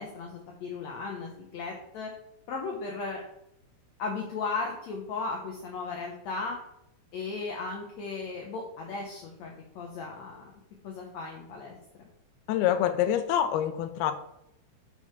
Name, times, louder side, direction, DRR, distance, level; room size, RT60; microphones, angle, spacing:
voice 1, 0.0-2.1 2.5-3.2 4.0-6.6 7.1-10.5 10.8-11.7, left 4 dB, 70° left, 0 dB, 1.7 m, -36 dB
voice 2, 12.5-14.1, left 10 dB, 90° left, 9 dB, 2.7 m, -26 dB
7.3 x 5.6 x 5.9 m, 0.81 s
omnidirectional pair, 4.4 m